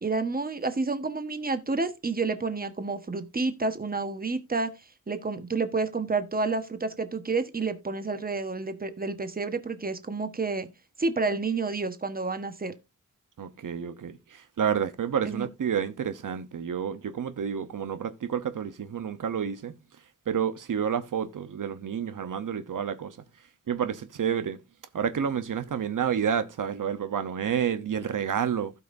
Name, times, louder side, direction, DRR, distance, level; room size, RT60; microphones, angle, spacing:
voice 1, 0.0-4.7 5.1-10.7 11.0-12.7 15.2-15.5, right 3 dB, 30° right, 1.2 m, -29 dB
voice 2, 13.4-19.7 20.3-23.2 23.7-24.6 24.9-28.7, right 8 dB, 80° right, 0.9 m, -29 dB
16.0 x 5.6 x 2.6 m
wide cardioid pair, 100°, 31 cm